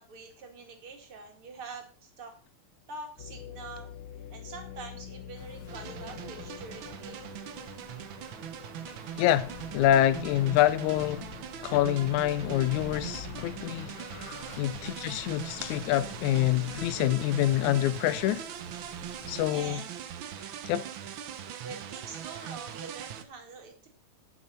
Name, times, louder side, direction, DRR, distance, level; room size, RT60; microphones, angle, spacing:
voice 1, 0.0-2.3 2.9-3.9 4.3-7.4 19.3-20.1 21.6-23.9, right 4 dB, 50° right, 2.9 m, -45 dB
sound 1, 3.2-13.1 13.6-13.7 14.4-14.7, left 10 dB, 60° left, 1.5 m, -48 dB
sound 2, 5.4-19.7, left 6 dB, 40° left, 1.2 m, -46 dB
sound 3, 5.7-23.2, right 9 dB, 75° right, 1.1 m, -41 dB
voice 2, 9.2-11.2 11.6-13.9 14.6-18.4 19.3-19.8 20.7-20.8, left 13 dB, 85° left, 2.1 m, -26 dB
12.0 x 6.7 x 5.7 m
omnidirectional pair, 3.3 m